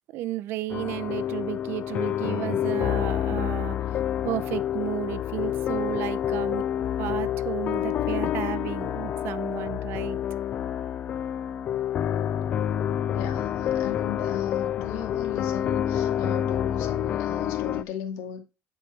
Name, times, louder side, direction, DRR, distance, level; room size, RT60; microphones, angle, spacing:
voice 1, 0.1-3.8 4.2-6.6 7.0-10.2, right 14 dB, 55° right, 0.6 m, -33 dB
sound 1, 0.7-17.8, left 10 dB, 30° left, 0.3 m, -28 dB
voice 2, 13.1-18.4, left 8 dB, 80° left, 2.3 m, -36 dB
10.0 x 4.7 x 4.6 m
cardioid pair, 180°, 5 cm